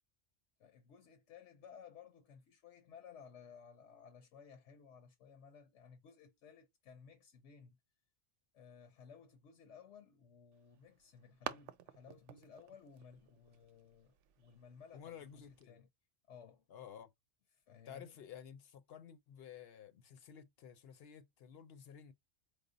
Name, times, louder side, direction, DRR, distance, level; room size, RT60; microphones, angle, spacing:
voice 1, 0.6-7.8 8.5-15.9 16.3-16.6 17.5-18.2, left 6 dB, 85° left, 1.1 m, -58 dB
sound 1, 10.5-15.6, right 10 dB, 85° right, 0.9 m, -52 dB
voice 2, 14.9-15.8 16.7-17.1 17.9-22.1, left 8 dB, 65° left, 0.8 m, -53 dB
4.9 x 2.0 x 3.8 m
omnidirectional pair, 1.2 m